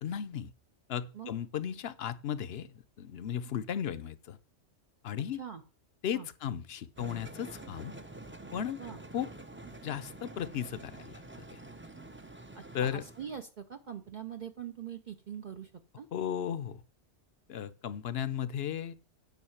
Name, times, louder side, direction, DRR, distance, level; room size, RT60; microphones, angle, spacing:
voice 1, 0.0-0.5 0.9-4.4 5.0-5.4 6.0-7.9 8.5-8.8 9.1-9.3 9.8-11.2 11.5-11.6 12.7-13.0 16.1-16.8 17.5-18.9, left 9 dB, 65° left, 0.9 m, -35 dB
sound 1, 7.0-13.4, right 2 dB, 15° right, 0.6 m, -48 dB
voice 2, 12.5-15.7 16.0-16.1, right 8 dB, 50° right, 0.7 m, -43 dB
9.4 x 5.3 x 7.2 m
omnidirectional pair, 1.2 m